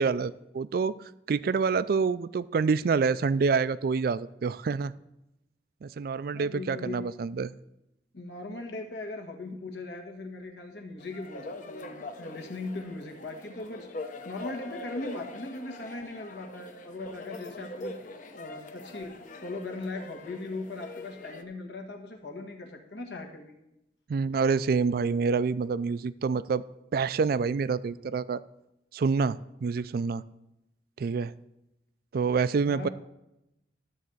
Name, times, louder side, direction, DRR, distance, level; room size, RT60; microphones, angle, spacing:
voice 1, 0.0-4.9 5.8-7.5 24.1-26.6 26.9-28.4 28.9-30.2 31.0-31.3 32.1-32.9, right 5 dB, 55° right, 17 dB, 0.3 m, -27 dB
voice 2, 6.3-7.2 8.1-18.0 18.3-23.5 32.7-32.9, left 2 dB, 70° left, 3 dB, 1.5 m, -39 dB
sound 1, 11.0-21.4, left 2 dB, 45° left, 0.9 m, -43 dB
12.5 x 4.1 x 7.8 m, 0.89 s
head